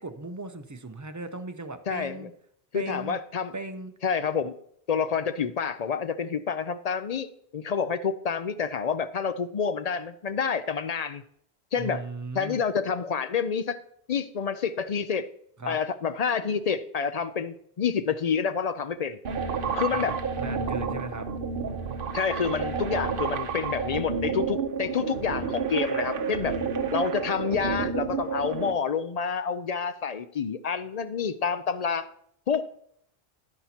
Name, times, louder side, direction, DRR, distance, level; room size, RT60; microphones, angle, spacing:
voice 1, 0.0-2.3 2.7-3.2 3.5-3.9 11.8-12.6 15.6-15.8 19.6-21.3, right 2 dB, 20° right, 7 dB, 0.7 m, -37 dB
voice 2, 1.9-2.3 2.7-3.5 4.0-4.5 4.9-7.3 7.5-11.2 11.7-12.0 12.3-13.8 14.1-15.3 15.7-19.2 19.7-20.2 22.1-26.6 26.9-32.1 32.5-32.6, left 6 dB, 50° left, 12 dB, 0.5 m, -28 dB
sound 1, 19.2-28.7, right 5 dB, 60° right, 0.9 m, -30 dB
11.0 x 10.0 x 2.8 m, 0.68 s
omnidirectional pair, 1.1 m